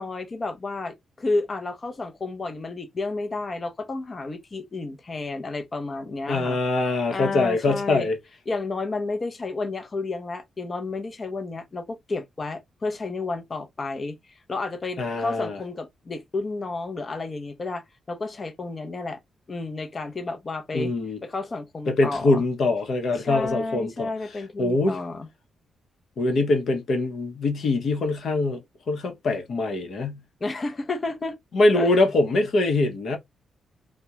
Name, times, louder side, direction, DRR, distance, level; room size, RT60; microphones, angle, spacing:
voice 1, 0.0-6.6 6.9-8.1 8.5-19.2 19.5-20.9 21.2-22.4 23.2-25.3 30.4-31.4 31.7-31.9, left 3 dB, 30° left, 0.6 m, -31 dB
voice 2, 6.3-8.2 15.0-15.6 20.7-21.2 21.9-24.1 24.6-25.0 26.2-28.6 28.9-30.2 31.5-33.2, left 2 dB, 65° left, 0.7 m, -23 dB
2.3 x 2.1 x 2.7 m
cardioid pair, 125°, 0 cm